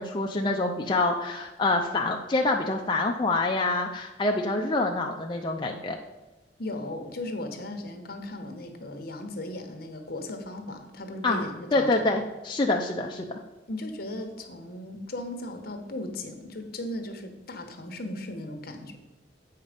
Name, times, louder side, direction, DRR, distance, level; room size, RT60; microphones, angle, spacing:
voice 1, 0.0-6.0 11.2-11.4 11.7-13.3, left 2 dB, 25° left, 1 dB, 0.5 m, -26 dB
voice 2, 6.6-12.2 13.7-19.0, left 1 dB, 60° left, 6 dB, 1.1 m, -37 dB
8.2 x 5.7 x 5.0 m, 1.1 s
head